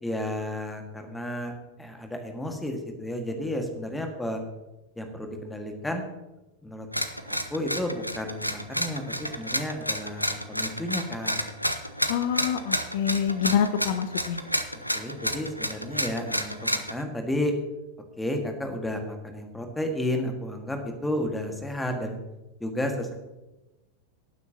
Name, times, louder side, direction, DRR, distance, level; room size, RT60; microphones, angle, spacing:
voice 1, 0.0-4.4 5.0-6.1 6.6-6.9 7.3-11.4 14.9-17.5 18.2-22.2 22.6-23.2, left 1 dB, 5° left, 4 dB, 1.7 m, -32 dB
sound 1, 6.9-17.0, equal, 90° left, 0.7 m, -30 dB
voice 2, 12.1-14.4, left 8 dB, 55° left, 10 dB, 0.8 m, -26 dB
19.0 x 9.3 x 2.9 m, 1.0 s
figure-of-eight pair, 90°, 0 cm